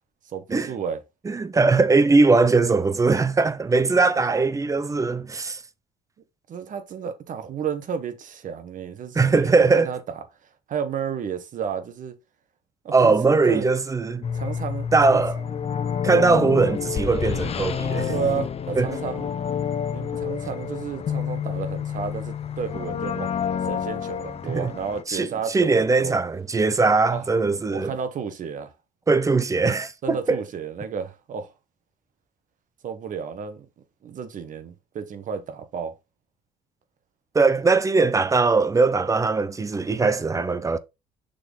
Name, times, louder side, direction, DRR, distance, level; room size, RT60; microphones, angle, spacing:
voice 1, 0.2-1.0 3.8-3.9 6.5-10.0 10.7-12.1 12.8-13.2 13.5-13.7 14.3-15.2 18.1-19.3 19.9-23.3 23.6-26.2 27.1-27.3 27.7-28.7 30.0-31.5 32.8-33.7 34.0-35.9, right 7 dB, 50° right, 1.1 m, -32 dB
voice 2, 1.2-5.6 9.1-9.9 12.9-14.2 14.9-15.4 16.0-18.1 18.8-18.9 24.4-24.7 25.1-27.9 29.1-30.4 37.3-40.8, right 4 dB, 20° right, 0.6 m, -20 dB
sound 1, 14.2-25.0, left 7 dB, 40° left, 0.7 m, -29 dB
6.6 x 3.9 x 4.0 m
cardioid pair, 110°, 17 cm